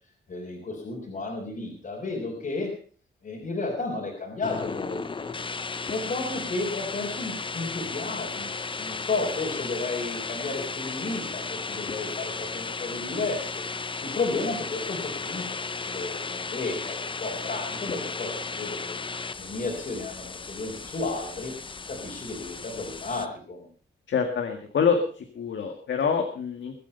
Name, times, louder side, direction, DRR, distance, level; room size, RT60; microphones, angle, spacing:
voice 1, 0.3-2.7 3.2-5.3 5.9-13.6 14.0-19.0 19.4-21.5 21.9-23.7, left 3 dB, 45° left, -3 dB, 4.2 m, -33 dB
sound 1, 4.4-23.3, left 4 dB, 25° left, 0.7 m, -35 dB
voice 2, 24.1-26.8, left 6 dB, 80° left, 5 dB, 1.9 m, -26 dB
22.5 x 8.6 x 5.6 m, 0.42 s
wide cardioid pair, 145°, 19 cm